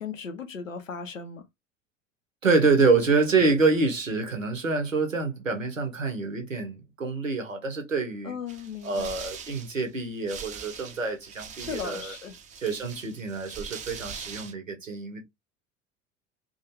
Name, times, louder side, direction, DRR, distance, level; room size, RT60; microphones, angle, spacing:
voice 1, 0.0-1.4 8.2-9.1 11.6-12.4, left 6 dB, 90° left, 0.5 m, -36 dB
voice 2, 2.4-8.4 8.8-12.1 12.6-15.2, right 3 dB, 85° right, 0.8 m, -26 dB
sound 1, 8.5-14.5, right 7 dB, 20° right, 0.4 m, -42 dB
2.4 x 2.2 x 2.8 m
figure-of-eight pair, 75°, 38 cm